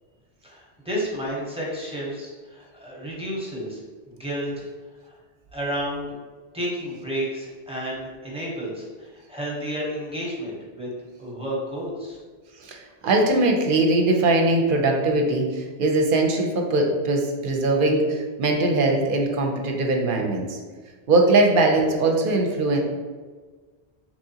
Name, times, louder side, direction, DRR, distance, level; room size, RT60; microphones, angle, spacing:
voice 1, 0.4-3.8 4.1-4.5 5.1-5.2 5.5-6.1 6.5-10.9 11.2-12.2, equal, 5° right, -5 dB, 0.7 m, -31 dB
voice 2, 12.6-20.6 21.1-22.8, right 2 dB, 60° right, 2 dB, 0.7 m, -21 dB
3.6 x 3.0 x 2.7 m, 1.4 s
omnidirectional pair, 1.1 m